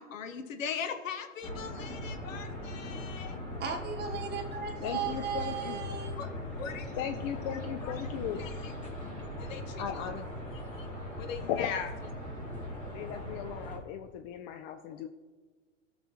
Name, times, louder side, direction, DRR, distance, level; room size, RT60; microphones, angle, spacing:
voice 1, 0.0-3.4 4.3-5.2 6.2-6.3 6.6-6.9 7.5-8.1 8.4-8.8 9.4-10.0 10.5-11.8, left 6 dB, 75° left, 8 dB, 1.0 m, -42 dB
sound 1, 1.4-13.8, left 1 dB, 20° left, 2.5 m, -40 dB
voice 2, 3.6-6.2, right 7 dB, 25° right, 3 dB, 1.4 m, -36 dB
voice 3, 4.8-5.8 7.0-8.5 9.4-9.5 9.8-10.2 11.5-12.0 12.9-15.1, left 9 dB, 45° left, 8 dB, 0.5 m, -36 dB
15.5 x 6.0 x 2.9 m, 1.4 s
hypercardioid pair, 100°, 39 cm